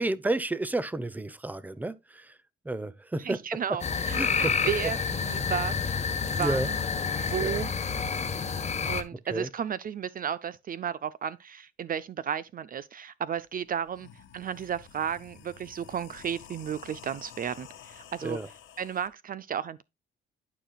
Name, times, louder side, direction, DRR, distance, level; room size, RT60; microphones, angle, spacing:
voice 1, 0.0-2.4 2.6-3.4 4.1-4.6 6.4-6.7 7.4-7.6 9.3-9.5 18.2-18.5, right 2 dB, 10° right, 0.7 m, -31 dB
voice 2, 3.2-5.9 6.3-6.7 7.2-7.7 8.9-14.1 14.3-18.4 18.8-19.8, right 8 dB, 45° right, 0.5 m, -33 dB
sound 1, 3.8-9.0, left 5 dB, 35° left, 1.1 m, -29 dB
sound 2, 13.4-13.5 13.8-19.1, left 9 dB, 75° left, 1.4 m, -50 dB
11.5 x 5.0 x 2.2 m
cardioid pair, 90°, 20 cm